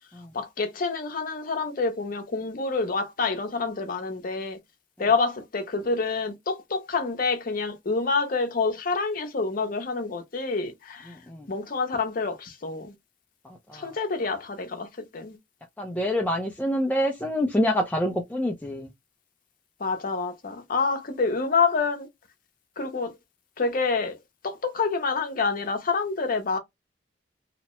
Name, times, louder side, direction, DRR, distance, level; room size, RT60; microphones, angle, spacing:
voice 1, 0.3-4.6 5.0-11.2 11.5-12.9 13.7-15.4 19.8-22.1 22.8-23.1 23.6-24.2 24.4-26.6, left 4 dB, 50° left, 0.7 m, -27 dB
voice 2, 11.1-11.5 13.4-14.0 15.8-18.9, equal, 10° left, 0.4 m, -27 dB
2.8 x 2.0 x 3.0 m
head